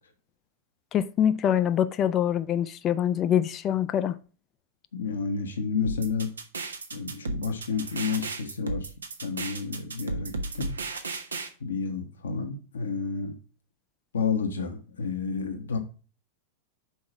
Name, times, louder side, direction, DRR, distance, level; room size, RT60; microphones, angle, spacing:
voice 1, 0.9-4.2, left 9 dB, 30° left, 0.4 m, -24 dB
voice 2, 4.9-6.3 6.9-8.9 9.2-10.7 11.6-13.3 14.1-15.8, left 5 dB, 65° left, 1.1 m, -30 dB
sound 1, 5.8-11.5, right 3 dB, 75° right, 1.0 m, -34 dB
5.8 x 4.7 x 5.7 m
figure-of-eight pair, 90°, 0 cm